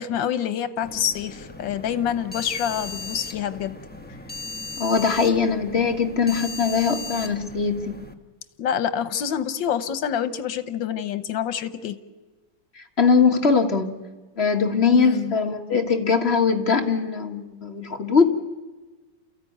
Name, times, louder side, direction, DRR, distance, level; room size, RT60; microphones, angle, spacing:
voice 1, 0.0-3.8 8.6-12.0 15.0-15.3, left 9 dB, 80° left, 12 dB, 1.7 m, -27 dB
sound 1, 0.8-8.1, left 3 dB, 5° left, 0.9 m, -37 dB
voice 2, 4.8-8.0 12.8-14.0 14.4-18.2, left 5 dB, 35° left, 4 dB, 1.7 m, -21 dB
29.0 x 14.5 x 9.4 m, 1.2 s
omnidirectional pair, 2.0 m